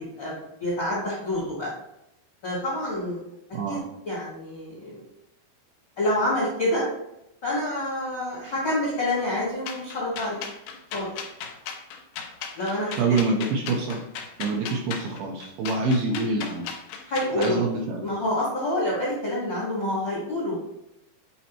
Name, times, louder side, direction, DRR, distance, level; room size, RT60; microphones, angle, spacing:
voice 1, 0.0-1.7 2.4-3.2 3.7-5.0 6.0-6.9 7.4-10.4 10.9-11.1 12.5-13.2 17.0-17.6 18.0-20.7, left 1 dB, 60° left, -6 dB, 1.2 m, -27 dB
sound 1, 9.7-17.6, left 6 dB, 85° left, 2.0 m, -37 dB
voice 2, 13.0-14.0 14.4-16.7 17.4-18.0, right 3 dB, 80° right, 0 dB, 2.4 m, -26 dB
8.5 x 4.3 x 3.0 m, 0.84 s
omnidirectional pair, 5.0 m